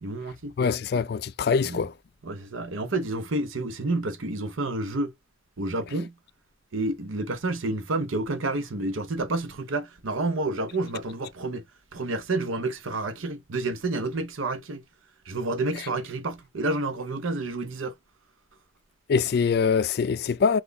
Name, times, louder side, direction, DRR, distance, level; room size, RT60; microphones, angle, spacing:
voice 1, 0.0-0.5 1.6-1.8 2.2-5.1 5.6-6.1 6.7-11.6 11.9-14.8 15.3-17.9, right 2 dB, 80° right, 0.8 m, -29 dB
voice 2, 0.6-1.9 19.1-20.6, left 5 dB, 50° left, 0.3 m, -23 dB
6.0 x 2.3 x 3.3 m
head